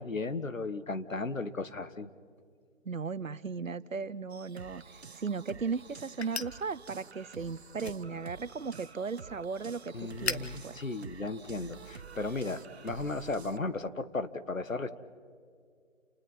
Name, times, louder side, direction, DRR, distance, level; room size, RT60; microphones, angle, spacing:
voice 1, 0.0-2.1 9.9-14.9, left 3 dB, 85° left, 11 dB, 1.6 m, -35 dB
voice 2, 2.8-10.8, right 5 dB, 90° right, 17 dB, 1.0 m, -36 dB
sound 1, 4.3-13.6, right 5 dB, 55° right, 1.2 m, -49 dB
sound 2, 4.8-12.0, left 5 dB, 55° left, 1.4 m, -44 dB
30.0 x 29.5 x 4.3 m, 2.3 s
figure-of-eight pair, 155°, 38 cm